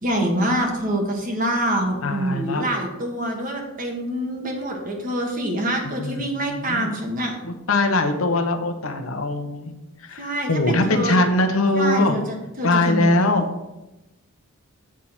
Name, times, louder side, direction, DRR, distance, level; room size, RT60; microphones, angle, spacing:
voice 1, 0.0-7.3 10.2-11.4 11.7-13.3, right 1 dB, 40° right, 1 dB, 1.4 m, -26 dB
voice 2, 2.0-2.7 6.0-6.9 7.4-9.7 10.0-12.2 12.6-13.5, left 2 dB, 70° left, 6 dB, 0.9 m, -22 dB
7.5 x 4.6 x 5.7 m, 0.98 s
head